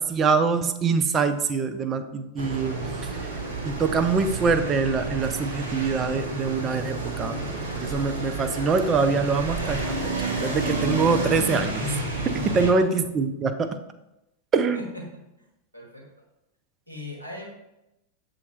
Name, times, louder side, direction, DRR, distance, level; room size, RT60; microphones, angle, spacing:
voice 1, 0.0-2.8 3.1-3.2 3.6-11.8 12.3-13.8 14.5-14.9, right 4 dB, 25° right, 8 dB, 0.4 m, -24 dB
sound 1, 2.4-12.7, right 2 dB, 50° right, 0.9 m, -30 dB
voice 2, 15.7-16.0 16.9-17.5, left 2 dB, 85° right, -1 dB, 1.1 m, -39 dB
6.9 x 2.5 x 3.0 m, 0.90 s
figure-of-eight pair, 90°, 0 cm